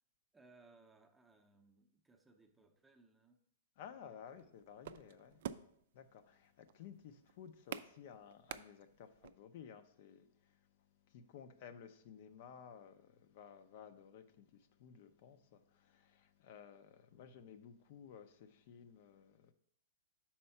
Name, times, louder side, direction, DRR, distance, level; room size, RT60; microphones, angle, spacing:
voice 1, 0.3-3.4 3.9-4.5 5.3-5.5, right 3 dB, 10° right, 0.6 m, -66 dB
voice 2, 3.8-5.4 5.9-19.5, left 8 dB, 55° left, 0.5 m, -56 dB
sound 1, 4.3-9.3, right 10 dB, 65° right, 0.3 m, -49 dB
5.5 x 4.3 x 5.5 m
hypercardioid pair, 145°, 0 cm